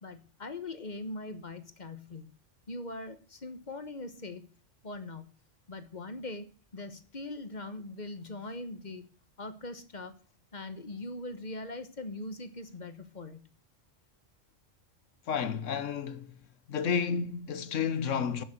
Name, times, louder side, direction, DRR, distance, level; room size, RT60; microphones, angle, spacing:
voice 1, 0.0-2.3 2.7-4.5 4.8-5.2 5.7-6.4 6.7-9.1 9.4-10.1 10.5-13.4, left 2 dB, 40° left, 1.2 m, -41 dB
voice 2, 15.3-16.4 16.7-18.4, left 6 dB, 85° left, 1.4 m, -31 dB
15.0 x 6.9 x 7.8 m
omnidirectional pair, 1.3 m